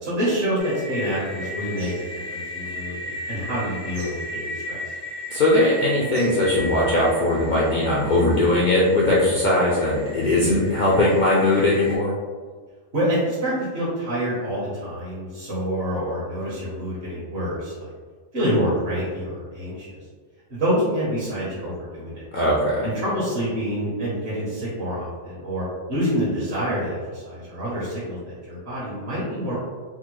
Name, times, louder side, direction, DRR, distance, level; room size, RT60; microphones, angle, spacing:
voice 1, 0.0-4.8 12.9-17.9 18.3-20.0 20.5-22.2 22.8-25.6 25.9-29.5, equal, 55° right, -10 dB, 1.2 m, -27 dB
sound 1, 0.6-12.0, equal, 90° right, 1.2 m, -36 dB
voice 2, 5.3-12.1 22.3-22.8, left 1 dB, 75° left, -5 dB, 0.4 m, -20 dB
3.5 x 2.1 x 2.9 m, 1.5 s
omnidirectional pair, 1.4 m